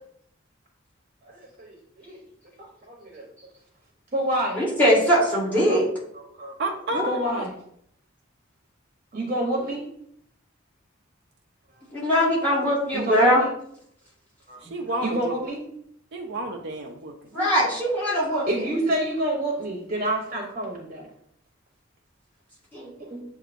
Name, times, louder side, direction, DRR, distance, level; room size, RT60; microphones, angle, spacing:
voice 1, 1.3-2.2 2.6-3.2 4.1-4.6 5.7-5.9 6.1-6.5 7.1-7.5 9.1-9.8 12.4-12.6 12.9-13.5 14.5-14.6 15.0-15.6 18.2-21.0 23.0-23.2, right 1 dB, 35° right, -2 dB, 0.9 m, -28 dB
voice 2, 4.6-5.9 6.9-7.1 11.9-13.4 17.3-18.5 22.7-22.9, equal, 10° left, -7 dB, 1.6 m, -21 dB
voice 3, 6.6-7.4 14.6-15.3 16.1-17.7, right 1 dB, 60° right, 1 dB, 0.5 m, -31 dB
7.7 x 2.6 x 2.6 m, 0.71 s
head